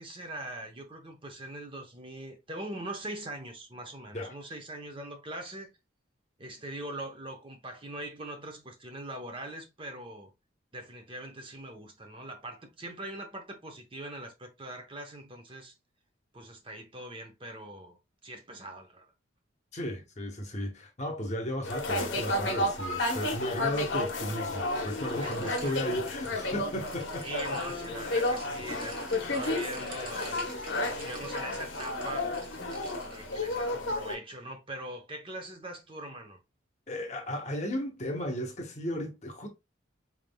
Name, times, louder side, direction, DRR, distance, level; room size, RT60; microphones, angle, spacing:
voice 1, 0.0-5.7 6.4-10.3 10.7-15.7 16.3-18.0 18.2-19.1 25.2-26.0 27.2-30.6 31.0-32.3 33.1-36.4, right 1 dB, 25° right, 0.8 m, -42 dB
voice 2, 19.7-27.3 36.9-39.5, equal, 35° left, 1.0 m, -35 dB
sound 1, 21.6-34.2, left 2 dB, 70° left, 1.0 m, -32 dB
sound 2, 25.0-33.2, right 2 dB, 45° right, 1.4 m, -50 dB
4.6 x 3.6 x 2.2 m
head